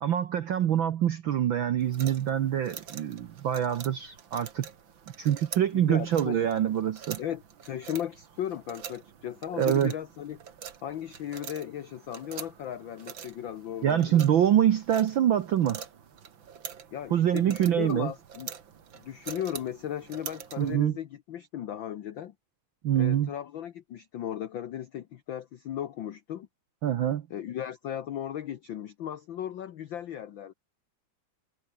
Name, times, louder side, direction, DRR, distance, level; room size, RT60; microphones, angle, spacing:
voice 1, 0.0-4.7 5.2-7.2 9.6-9.9 13.8-15.8 17.1-18.1 20.6-20.9 22.8-23.3 26.8-27.2, right 10 dB, 65° right, 1.2 m, -25 dB
sound 1, 1.8-20.8, right 7 dB, 45° right, 2.2 m, -45 dB
voice 2, 5.7-6.4 7.2-10.4 10.8-14.2 16.9-18.5 18.9-22.3 23.0-26.5 27.3-30.5, left 10 dB, 75° left, 1.1 m, -36 dB
omnidirectional pair, 3.3 m